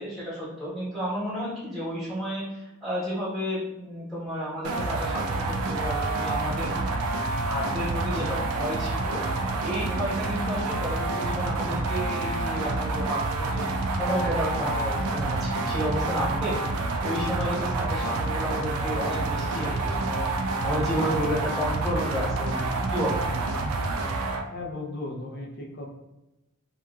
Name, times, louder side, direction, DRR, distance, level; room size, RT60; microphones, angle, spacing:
voice 1, 0.0-6.9 7.4-16.5 17.0-23.2, equal, ahead, -10 dB, 1.0 m, -32 dB
sound 1, 4.6-24.4, right 2 dB, 75° right, 0.3 m, -28 dB
voice 2, 24.5-25.9, left 2 dB, 50° left, -1 dB, 0.5 m, -36 dB
2.8 x 2.4 x 2.2 m, 0.96 s
head